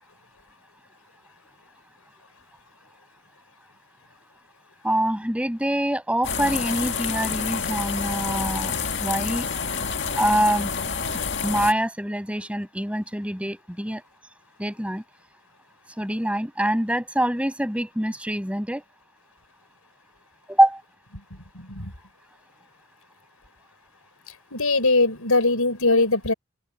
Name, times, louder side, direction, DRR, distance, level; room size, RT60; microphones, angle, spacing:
voice 1, 4.8-8.7 9.0-9.5 10.1-10.7 11.4-14.0 14.6-15.0 16.0-18.8 20.5-20.8, right 1 dB, 5° right, 6.5 m, -24 dB
sound 1, 6.2-11.7, left 6 dB, 55° left, 2.3 m, -28 dB
voice 2, 21.5-21.9 24.5-26.3, left 3 dB, 85° left, 6.0 m, -21 dB
open air
head